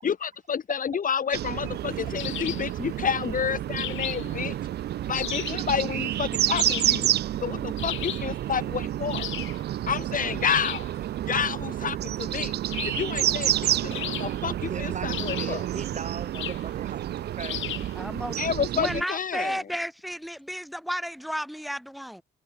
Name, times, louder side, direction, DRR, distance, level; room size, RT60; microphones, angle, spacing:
voice 1, 0.0-4.6 5.1-7.1 7.4-9.3 9.9-10.9 11.2-12.6 12.8-15.6 18.4-19.6, left 7 dB, 45° left, 1.4 m, -29 dB
sound 1, 1.3-19.0, right 12 dB, 55° right, 0.4 m, -29 dB
sound 2, 2.2-2.7 3.8-4.4 5.1-5.7 6.5-7.0 7.8-8.3 9.1-9.6 10.5-10.9 12.7-13.2 13.9-14.6 15.1-15.7 16.3-16.7 17.4-17.9, left 14 dB, 75° left, 0.8 m, -35 dB
voice 2, 14.7-17.6, right 5 dB, 35° right, 2.1 m, -39 dB
voice 3, 17.9-18.4 18.7-22.2, equal, ahead, 3.0 m, -32 dB
cardioid pair, 90°, 20 cm